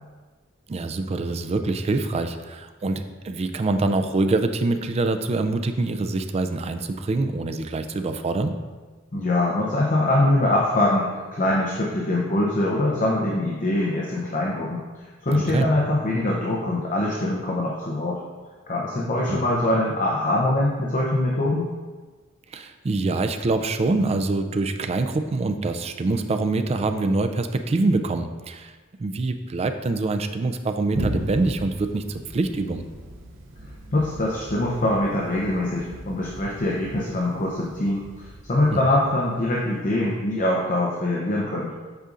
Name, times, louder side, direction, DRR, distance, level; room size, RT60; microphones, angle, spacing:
voice 1, 0.7-8.5 15.3-15.7 19.3-19.4 22.5-28.7 29.0-32.8, right 3 dB, 30° right, 7 dB, 0.3 m, -25 dB
voice 2, 9.1-14.8 15.2-18.2 18.7-21.7 33.9-41.7, left 1 dB, 40° left, -3 dB, 0.7 m, -23 dB
Thunder, 30.9-40.3, right 1 dB, 70° right, 0.7 m, -37 dB
8.1 x 5.1 x 2.5 m, 1.4 s
head